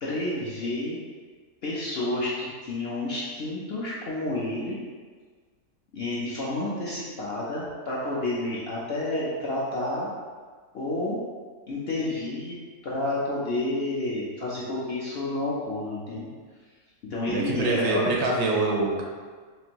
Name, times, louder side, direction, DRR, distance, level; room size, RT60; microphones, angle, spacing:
voice 1, 0.0-1.0 1.6-4.8 5.9-10.1 10.7-11.2 11.7-12.6 12.8-16.3 17.0-18.0, left 2 dB, 60° left, -7 dB, 0.7 m, -30 dB
voice 2, 17.3-19.0, right 3 dB, 85° right, -1 dB, 1.3 m, -25 dB
4.3 x 2.6 x 2.9 m, 1.5 s
omnidirectional pair, 1.7 m